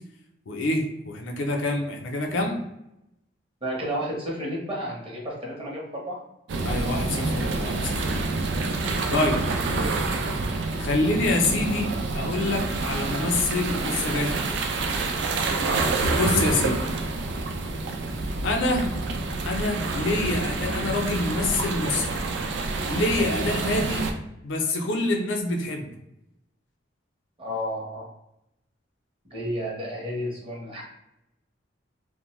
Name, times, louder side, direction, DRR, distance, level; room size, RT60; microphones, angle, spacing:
voice 1, 0.5-2.6 6.6-8.3 9.1-9.4 10.8-11.9 12.1-14.6 16.2-16.8 18.4-18.9 19.4-22.1 22.9-24.1 24.4-25.9, left 2 dB, 85° left, 2 dB, 0.5 m, -26 dB
voice 2, 3.6-6.2 9.7-9.8 15.7-16.2 18.0-18.3 23.2-23.4 27.4-28.1 29.3-30.8, equal, 30° right, -3 dB, 0.7 m, -32 dB
sound 1, 6.5-24.1, right 3 dB, 65° right, 0.3 m, -27 dB
2.5 x 2.1 x 3.0 m, 0.85 s
head